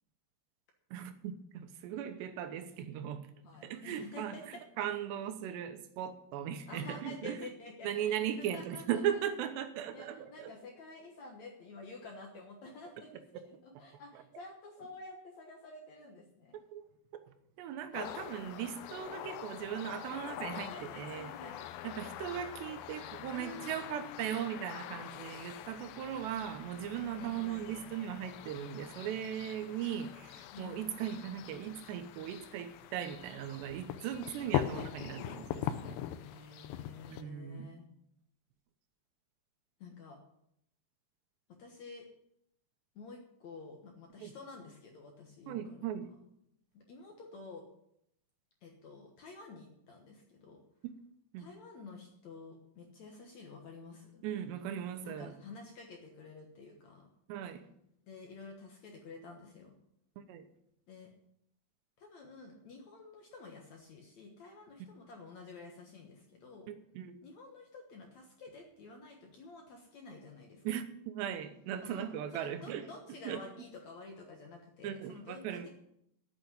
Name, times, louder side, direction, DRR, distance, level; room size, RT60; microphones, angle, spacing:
voice 1, 0.9-3.3 3.6-7.5 7.8-10.5 14.1-14.2 16.5-16.8 17.2-21.3 21.8-36.0 37.1-37.7 44.2-44.3 45.5-46.1 51.3-51.5 54.2-55.3 57.3-57.7 60.2-60.5 66.7-67.2 70.6-72.8 73.2-73.4 74.8-75.7, right 9 dB, 85° right, 3.2 m, -38 dB
voice 2, 3.4-4.6 6.7-9.0 9.9-16.6 20.7-21.6 23.3-24.2 27.0-27.9 30.5-30.8 36.2-37.9 39.8-40.2 41.6-42.1 43.0-45.8 46.7-47.6 48.6-50.6 51.4-54.2 55.0-57.1 58.1-59.7 60.9-61.1 62.0-66.7 67.2-70.6 71.8-75.7, left 3 dB, 60° left, 2.0 m, -50 dB
sound 1, 17.9-37.2, left 12 dB, 85° left, 2.9 m, -42 dB
8.9 x 8.4 x 9.4 m
omnidirectional pair, 4.8 m